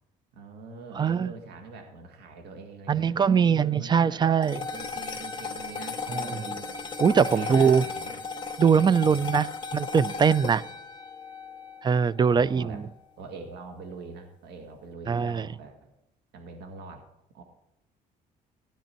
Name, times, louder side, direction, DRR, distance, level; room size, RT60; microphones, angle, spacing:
voice 1, 0.3-4.3 4.7-6.6 7.2-8.2 8.9-9.4 12.3-12.8 13.2-15.7 16.3-17.1 17.3-17.4, right 4 dB, 75° right, 2.0 m, -44 dB
voice 2, 1.0-1.3 2.9-4.6 6.1-6.6 7.0-7.8 8.6-10.6 11.8-12.8 15.1-15.5, right 6 dB, 25° right, 0.5 m, -22 dB
sound 1, 4.4-12.9, left 4 dB, 25° left, 1.8 m, -36 dB
16.5 x 10.0 x 4.5 m
cardioid pair, 110°, 17 cm